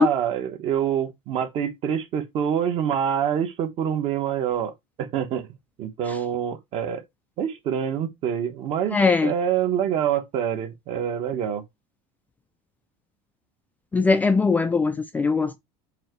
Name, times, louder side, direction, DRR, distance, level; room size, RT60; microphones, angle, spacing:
voice 1, 0.0-4.7 5.0-7.0 7.4-11.7, right 9 dB, 40° right, 1.2 m, -26 dB
voice 2, 8.9-9.3 13.9-15.6, left 4 dB, 10° left, 0.3 m, -20 dB
7.4 x 2.8 x 4.5 m
cardioid pair, 165°, 15 cm